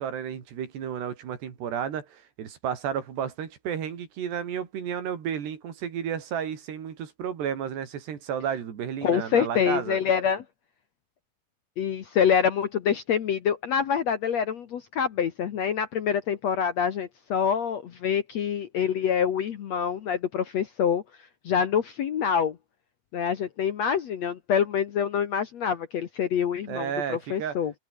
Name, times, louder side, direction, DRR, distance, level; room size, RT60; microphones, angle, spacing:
voice 1, 0.0-10.0 26.7-27.6, right 8 dB, 85° right, 5.3 m, -32 dB
voice 2, 9.0-10.4 11.8-21.0 21.5-22.6 23.1-27.7, left 7 dB, 60° left, 1.8 m, -26 dB
omnidirectional pair, 4.7 m